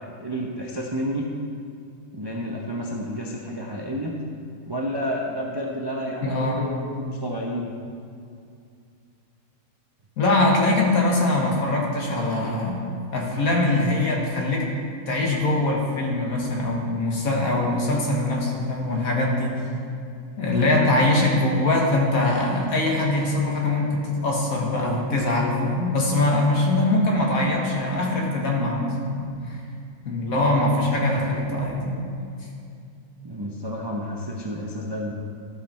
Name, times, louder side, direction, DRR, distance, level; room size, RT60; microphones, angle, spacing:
voice 1, 0.0-1.3 2.1-4.2 4.7-7.7 30.4-31.3 33.2-35.1, equal, 30° right, -2 dB, 0.4 m, -30 dB
voice 2, 6.2-6.7 10.2-12.8 13.1-14.7 15.1-19.6 20.4-29.6 30.0-32.0, left 2 dB, 60° left, -1 dB, 1.8 m, -22 dB
14.0 x 5.5 x 4.3 m, 2.4 s
omnidirectional pair, 1.7 m